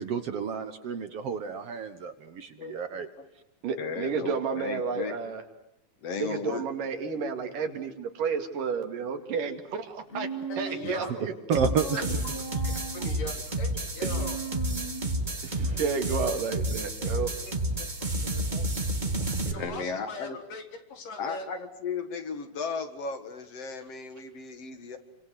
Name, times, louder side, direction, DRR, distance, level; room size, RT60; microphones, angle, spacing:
voice 1, 0.0-3.1 11.5-12.0 15.4-15.8 19.5-19.6, right 6 dB, 55° right, 9 dB, 1.9 m, -31 dB
voice 2, 2.6-3.3 3.8-5.1 6.0-6.6 15.7-15.8 17.1-18.7 19.0-20.4 21.2-25.0, left 5 dB, 50° left, 8 dB, 2.7 m, -37 dB
voice 3, 3.6-5.4 6.2-10.3 10.6-11.3 15.6-17.3, right 5 dB, 80° right, 6 dB, 3.9 m, -31 dB
Human voice, 10.1-11.0 11.6-13.2 14.0-15.3, right 3 dB, 25° left, 1.5 m, -38 dB
voice 4, 10.5-11.3 11.9-14.4 19.3-20.6 20.9-21.5, left 3 dB, 80° left, 4 dB, 5.3 m, -40 dB
sound 1, 11.5-19.5, right 1 dB, 20° right, 1.5 m, -30 dB
30.0 x 25.0 x 7.9 m, 0.78 s
omnidirectional pair, 3.8 m